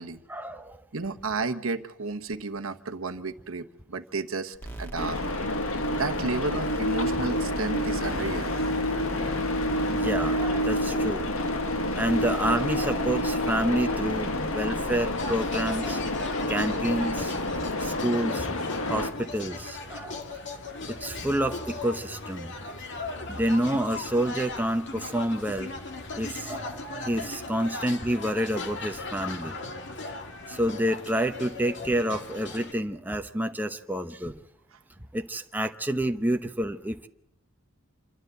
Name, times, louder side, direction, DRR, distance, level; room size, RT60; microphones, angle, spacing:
voice 1, 0.3-0.8 9.9-11.3 11.9-16.1 16.5-17.3 17.8-18.5 18.9-20.2 20.9-22.6 23.3-25.7 26.2-29.6 30.5-34.4 35.1-37.1, right 1 dB, 10° right, 6 dB, 0.8 m, -28 dB
voice 2, 0.9-5.3 5.9-8.7, right 3 dB, 70° right, 7 dB, 1.1 m, -32 dB
sound 1, 4.5-21.6, right 1 dB, 10° left, 2.0 m, -41 dB
sound 2, 5.0-19.1, left 1 dB, 75° left, 1.7 m, -28 dB
sound 3, 15.2-32.7, left 3 dB, 60° left, 2.1 m, -38 dB
27.5 x 12.5 x 8.0 m, 0.77 s
head